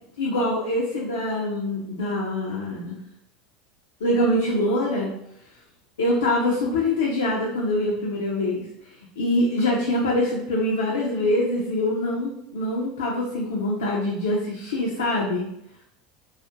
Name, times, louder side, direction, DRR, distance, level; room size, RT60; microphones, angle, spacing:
voice 1, 0.2-3.0 4.0-5.2 6.0-15.5, left 1 dB, 90° left, -4 dB, 0.4 m, -24 dB
2.3 x 2.0 x 2.7 m, 0.76 s
hypercardioid pair, 95°, 0 cm